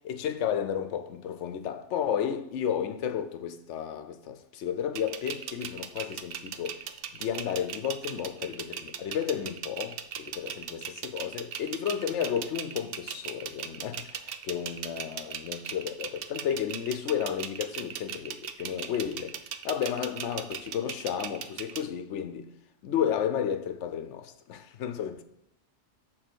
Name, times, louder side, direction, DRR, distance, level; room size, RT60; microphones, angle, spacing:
voice 1, 0.0-6.8 7.1-19.4 19.6-22.5 22.8-25.2, left 8 dB, 80° left, 1.0 m, -32 dB
sound 1, 5.0-21.8, right 9 dB, 60° right, 0.7 m, -38 dB
6.7 x 4.1 x 6.1 m
omnidirectional pair, 1.2 m